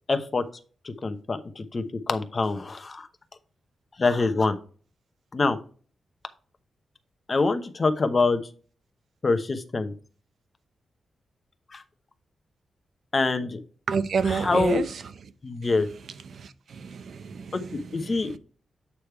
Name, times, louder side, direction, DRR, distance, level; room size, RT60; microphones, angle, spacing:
voice 1, 0.1-0.4 0.8-3.1 4.0-4.6 5.3-5.6 7.3-8.4 9.2-9.9 11.7-11.8 13.1-13.6 14.2-14.8 15.4-15.9 17.5-17.6 17.9-18.3, left 3 dB, 30° left, 0.8 m, -25 dB
voice 2, 13.9-15.0 16.3-18.4, right 6 dB, 65° right, 0.6 m, -30 dB
8.3 x 3.4 x 4.6 m
wide cardioid pair, 135°, 0 cm